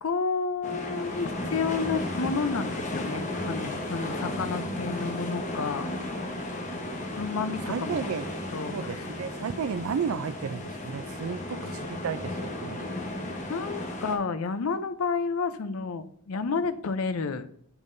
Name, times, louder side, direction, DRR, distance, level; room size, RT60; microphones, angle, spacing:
voice 1, 0.0-5.9 7.1-8.0 8.5-9.1 13.2-17.5, left 4 dB, 75° left, 12 dB, 0.5 m, -31 dB
sound 1, 0.6-14.2, left 1 dB, 35° left, 1.0 m, -34 dB
voice 2, 7.6-8.3 8.7-12.9, right 6 dB, 70° right, 14 dB, 0.4 m, -33 dB
8.0 x 5.5 x 2.6 m, 0.68 s
head